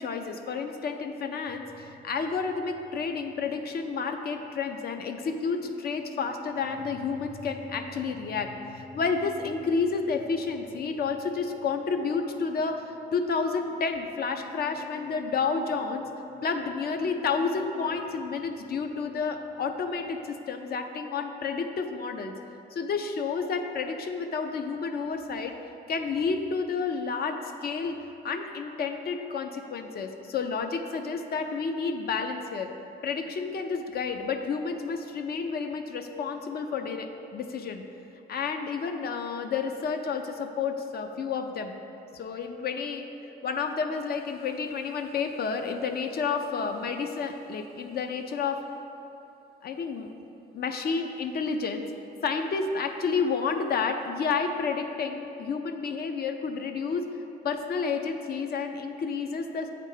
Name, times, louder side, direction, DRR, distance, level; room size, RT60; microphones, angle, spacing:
voice 1, 0.0-16.1 16.4-22.3 22.7-25.5 25.9-28.0 28.2-32.7 33.0-37.8 38.3-41.7 42.1-43.1 43.4-48.6 49.6-50.1 50.5-51.9 52.2-57.1 57.4-59.7, left 5 dB, 50° left, 6 dB, 0.5 m, -30 dB
sound 1, 1.4-20.3, left 2 dB, 70° left, 1.5 m, -48 dB
7.5 x 3.3 x 4.9 m, 2.9 s
cardioid pair, 90°, 20 cm